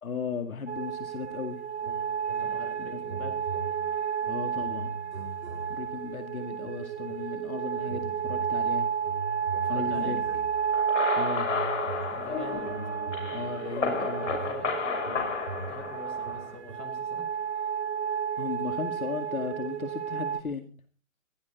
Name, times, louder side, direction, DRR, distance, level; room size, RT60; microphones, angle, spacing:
voice 1, 0.0-1.6 2.8-3.0 4.3-4.9 5.7-8.9 9.7-10.2 11.2-11.5 13.3-14.3 18.4-20.6, left 5 dB, 85° left, 7 dB, 2.4 m, -36 dB
sound 1, 0.7-20.4, right 8 dB, 55° right, 1.9 m, -32 dB
sound 2, 1.8-2.7 3.0-6.1 6.6-7.5 7.8-10.9 11.4-16.8, right 3 dB, 80° right, 4.5 m, -42 dB
voice 2, 2.4-3.3 9.6-10.2 12.1-12.7 13.6-15.3 15.7-17.3, left 3 dB, 5° left, 5 dB, 0.8 m, -44 dB
sound 3, 10.7-16.5, left 5 dB, 60° left, 6.0 m, -32 dB
20.0 x 13.0 x 4.1 m, 0.41 s
hypercardioid pair, 165°, 41 cm